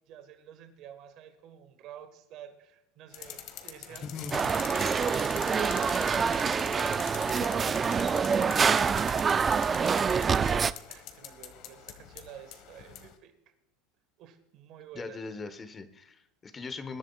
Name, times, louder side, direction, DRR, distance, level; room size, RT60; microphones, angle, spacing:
voice 1, 0.1-8.9 9.8-10.6 10.9-13.3 14.2-15.2, right 10 dB, 55° right, 7 dB, 1.6 m, -48 dB
sound 1, 3.1-13.1, left 10 dB, 60° left, 1.5 m, -44 dB
voice 2, 3.9-4.4 14.9-17.0, left 4 dB, 25° left, 11 dB, 1.2 m, -40 dB
sound 2, 4.3-10.7, right 6 dB, 25° right, 0.4 m, -26 dB
21.0 x 10.5 x 2.4 m, 0.89 s
supercardioid pair, 110°, 0 cm